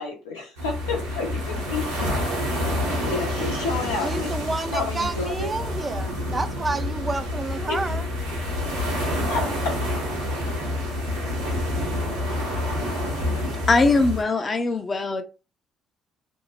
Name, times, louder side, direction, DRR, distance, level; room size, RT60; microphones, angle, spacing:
voice 1, 0.0-2.1 2.5-2.7 3.0-5.5 7.7-7.8 9.3-9.8, left 4 dB, 85° left, 0.7 m, -30 dB
sound 1, 0.6-14.2, left 1 dB, 85° right, 0.9 m, -28 dB
voice 2, 4.0-8.1, right 3 dB, 30° right, 0.4 m, -30 dB
voice 3, 13.7-15.2, left 3 dB, 35° left, 0.6 m, -21 dB
2.6 x 2.0 x 3.0 m
hypercardioid pair, 45°, 0 cm